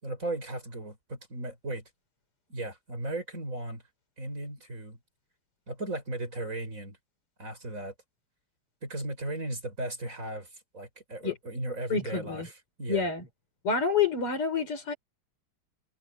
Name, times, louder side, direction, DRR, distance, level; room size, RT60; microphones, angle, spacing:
voice 1, 0.0-1.8 2.5-3.8 4.2-5.0 5.7-7.0 7.4-7.9 8.8-13.1, right 2 dB, 35° right, 5.9 m, -36 dB
voice 2, 11.9-12.5 12.9-13.2 13.6-14.9, left 5 dB, 90° left, 5.4 m, -28 dB
omnidirectional pair, 2.4 m